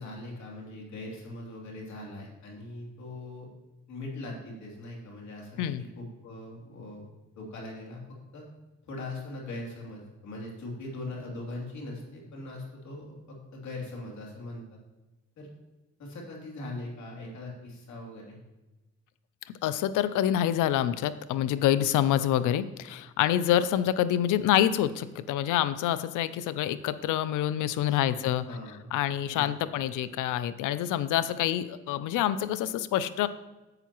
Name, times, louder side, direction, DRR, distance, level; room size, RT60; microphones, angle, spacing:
voice 1, 0.0-3.5 3.9-7.0 7.4-8.0 8.3-8.4 8.8-14.8 15.4-15.5 16.0-18.4 27.8-28.9 29.3-29.7, left 2 dB, 65° left, -1 dB, 2.9 m, -41 dB
voice 2, 19.6-28.4 28.9-33.3, left 11 dB, 85° left, 15 dB, 0.5 m, -27 dB
10.5 x 8.0 x 3.0 m, 1.1 s
cardioid pair, 90°, 30 cm